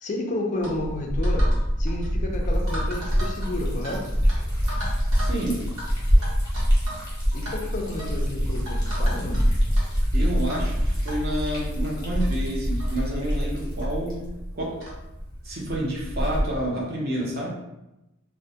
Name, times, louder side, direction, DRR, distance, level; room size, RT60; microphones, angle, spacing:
voice 1, 0.0-1.5 1.8-4.1 7.3-9.4, left 1 dB, 35° left, 2 dB, 0.4 m, -31 dB
Liquid, 0.6-16.7, equal, 20° left, 0.8 m, -25 dB
sound 1, 0.6-0.8 1.2-1.6 1.9-2.1 2.7-4.0 4.3-4.4 4.7-5.4 5.8-5.9 6.2-7.0 7.3-7.5 8.0-8.2 8.7-9.4 9.7-9.9 10.5-10.7 11.1-11.2 11.9-12.0 12.2-12.3 12.8-12.9 13.8-13.9 14.8-15.0, equal, 75° right, 0.9 m, -36 dB
voice 2, 5.1-5.6 10.1-14.3 14.5-14.8 15.4-17.5, right 1 dB, 45° right, -3 dB, 0.6 m, -29 dB
2.2 x 2.1 x 2.7 m, 0.92 s
head